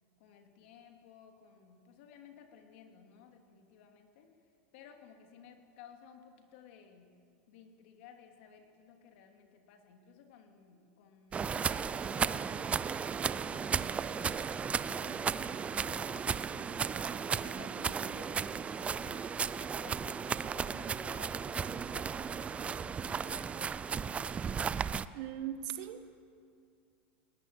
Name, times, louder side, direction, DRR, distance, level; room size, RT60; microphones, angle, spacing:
voice 1, 0.2-4.4 4.7-7.1 7.5-12.9 13.3-16.9 17.2-23.6, left 7 dB, 65° left, 4 dB, 3.1 m, -56 dB
sound 1, 11.3-25.1, right 6 dB, 20° right, 0.5 m, -35 dB
voice 2, 25.1-26.1, right 10 dB, 55° right, 9 dB, 1.7 m, -39 dB
20.5 x 19.5 x 8.7 m, 2.3 s
supercardioid pair, 130°, 7 cm